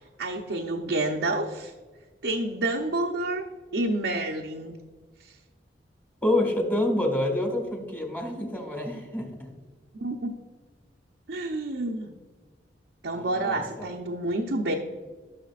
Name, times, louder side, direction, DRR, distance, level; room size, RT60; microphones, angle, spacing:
voice 1, 0.2-1.7 2.2-3.4 3.7-4.7 5.2-5.3 10.0-10.3 11.3-12.1 13.0-14.7, right 2 dB, 70° right, 0 dB, 0.7 m, -29 dB
voice 2, 6.2-9.3 13.1-13.9, left 1 dB, 10° left, 2 dB, 1.7 m, -27 dB
14.5 x 6.5 x 2.4 m, 1.4 s
head